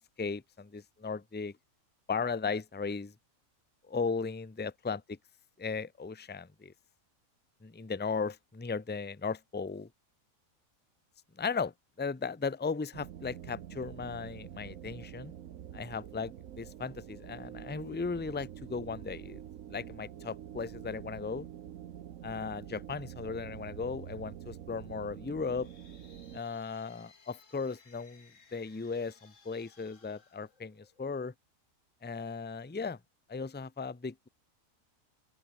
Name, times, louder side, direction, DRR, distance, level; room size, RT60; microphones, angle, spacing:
voice 1, 0.0-1.5 2.1-3.1 3.9-5.2 5.6-6.7 7.6-9.9 11.4-11.7 12.0-15.3 15.7-19.4 19.7-21.5 22.2-25.7 26.3-31.3 32.0-33.0 33.3-34.3, left 5 dB, 10° left, 0.6 m, -36 dB
sound 1, 12.9-26.4, right 10 dB, 70° right, 1.2 m, -46 dB
sound 2, 25.3-31.2, left 5 dB, 65° left, 2.4 m, -62 dB
open air
omnidirectional pair, 1.4 m